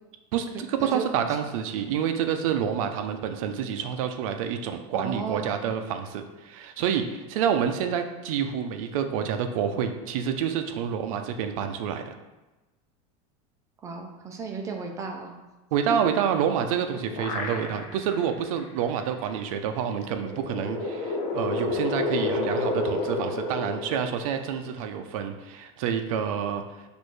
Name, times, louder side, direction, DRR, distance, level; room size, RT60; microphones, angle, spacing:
voice 1, 0.3-12.0 15.7-26.6, right 8 dB, 75° right, 7 dB, 0.5 m, -28 dB
voice 2, 4.9-5.6 13.8-15.3, right 5 dB, 15° right, 2 dB, 0.5 m, -34 dB
sound 1, 16.6-18.1 18.6-18.7 20.0-24.8, left 2 dB, 60° left, 0.8 m, -30 dB
6.3 x 2.6 x 3.2 m, 1.1 s
supercardioid pair, 165°, 18 cm